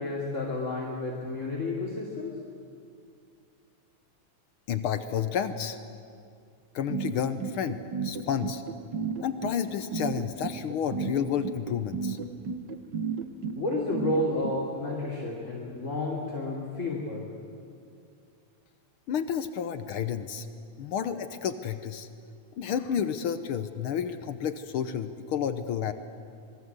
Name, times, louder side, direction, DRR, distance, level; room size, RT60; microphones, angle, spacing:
voice 1, 0.0-2.4 13.5-17.2, left 2 dB, 25° left, -3 dB, 2.9 m, -31 dB
voice 2, 4.7-5.8 6.7-8.6 9.2-12.2 19.1-20.5 20.8-22.1 22.6-25.9, left 8 dB, 75° left, 10 dB, 1.2 m, -31 dB
sound 1, 6.9-14.5, right 6 dB, 65° right, 1.0 m, -32 dB
26.5 x 22.0 x 8.0 m, 2.3 s
omnidirectional pair, 3.5 m